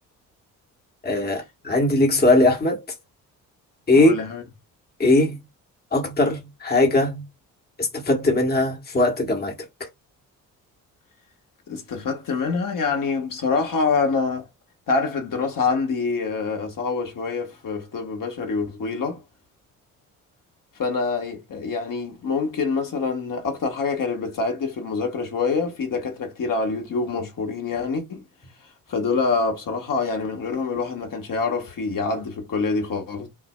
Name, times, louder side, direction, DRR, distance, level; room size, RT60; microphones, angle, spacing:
voice 1, 1.0-2.8 3.9-4.1 5.0-5.4 5.9-7.2 7.8-9.5 9.8-9.9, left 2 dB, 20° left, 1.3 m, -20 dB
voice 2, 3.9-4.4 11.7-14.5 14.9-19.2 20.7-28.2 28.9-33.3, left 4 dB, 45° left, 1.5 m, -26 dB
5.8 x 2.6 x 2.2 m
hypercardioid pair, 50°, 43 cm